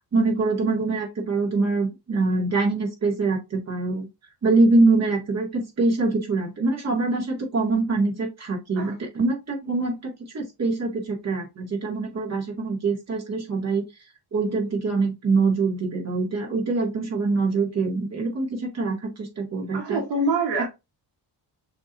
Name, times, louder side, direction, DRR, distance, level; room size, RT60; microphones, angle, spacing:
voice 1, 0.1-4.1 4.4-13.8 14.3-20.0 20.6-20.7, right 3 dB, 40° right, 2.0 m, -24 dB
voice 2, 19.7-20.6, right 2 dB, 85° right, 1.3 m, -25 dB
6.4 x 3.1 x 2.5 m
cardioid pair, 135°, 41 cm